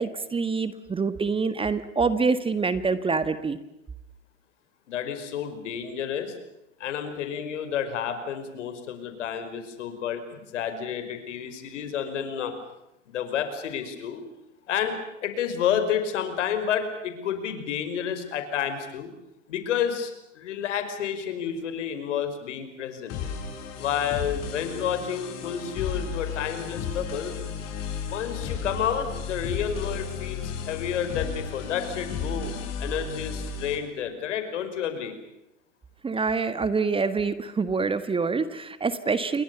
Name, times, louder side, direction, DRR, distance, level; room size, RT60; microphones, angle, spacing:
voice 1, 0.0-3.6 36.0-39.4, right 4 dB, 15° right, 13 dB, 1.5 m, -26 dB
voice 2, 4.9-6.3 6.8-12.5 13.1-14.2 14.7-19.1 19.5-23.2 23.8-27.3 28.1-35.2, left 8 dB, 70° left, 9 dB, 5.4 m, -30 dB
sound 1, 23.1-33.8, left 6 dB, 45° left, 7.4 m, -34 dB
29.0 x 23.0 x 7.0 m, 0.88 s
hypercardioid pair, 100°, 37 cm